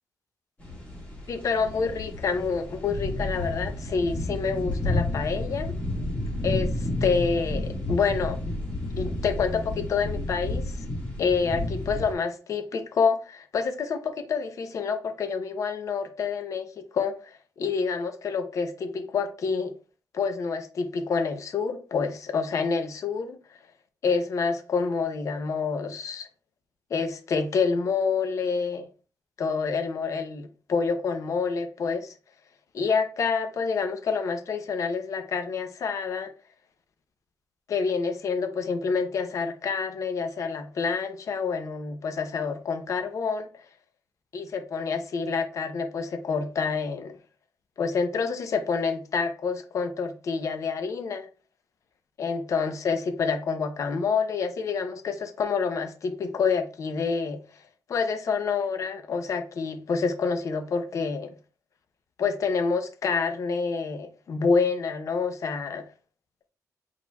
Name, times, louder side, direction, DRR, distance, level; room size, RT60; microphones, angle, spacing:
sound 1, 0.6-12.1, left 1 dB, 25° left, 1.7 m, -31 dB
voice 1, 1.3-5.7 6.4-8.4 9.0-10.7 11.2-19.7 20.1-23.4 24.0-26.3 26.9-28.9 29.4-32.1 32.7-36.3 37.7-43.5 44.3-47.2 47.8-51.3 52.2-57.4 57.9-61.3 62.2-65.9, left 5 dB, 55° left, 0.6 m, -28 dB
4.3 x 4.3 x 2.3 m
wide cardioid pair, 160°, 6 cm